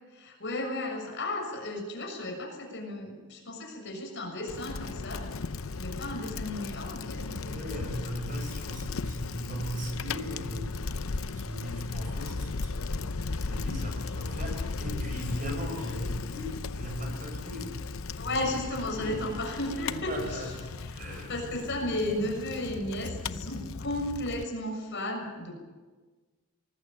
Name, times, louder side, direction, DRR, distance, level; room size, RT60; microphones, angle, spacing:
voice 1, 0.1-5.2 5.8-7.9 8.2-8.3 18.2-20.5 20.8-20.9 21.3-25.5, left 1 dB, 55° left, 2 dB, 6.8 m, -34 dB
Bicycle, 4.5-24.4, left 3 dB, 70° left, 0.8 m, -36 dB
voice 2, 7.4-17.7 18.2-18.4 18.7-19.2 20.1-21.4, equal, 35° right, 3 dB, 7.4 m, -38 dB
24.0 x 20.5 x 8.9 m, 1.3 s
head